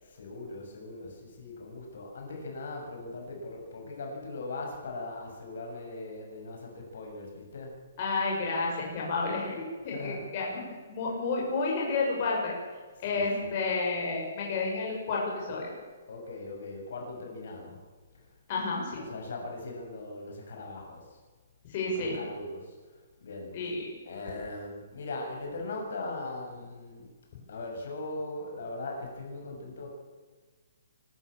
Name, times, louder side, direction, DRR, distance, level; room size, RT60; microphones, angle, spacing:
voice 1, 0.0-7.7 9.8-10.3 11.2-11.3 12.9-13.6 16.1-17.8 18.1-18.3 19.0-21.2 21.9-23.7 24.0-27.1 27.5-29.9, left 2 dB, 60° left, 1 dB, 6.8 m, -40 dB
voice 2, 8.0-10.6 10.9-12.5 13.0-15.7 18.5-19.0 21.7-22.2 23.5-23.9, left 3 dB, 30° left, -3 dB, 6.5 m, -30 dB
24.5 x 13.0 x 8.7 m, 1.4 s
hypercardioid pair, 170°, 0 cm